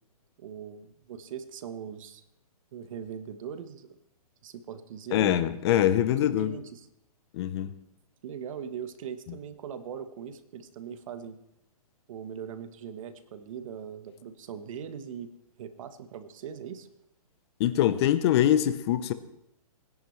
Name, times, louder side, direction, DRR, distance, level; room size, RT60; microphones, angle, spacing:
voice 1, 0.4-2.2 2.7-4.0 4.4-5.5 6.3-6.9 8.2-11.4 12.1-15.3 15.6-16.9, right 8 dB, 55° right, 1.3 m, -40 dB
voice 2, 5.1-6.6 7.3-7.7 17.6-19.1, left 11 dB, 45° left, 0.8 m, -24 dB
20.0 x 10.5 x 3.3 m
hypercardioid pair, 140°, 20 cm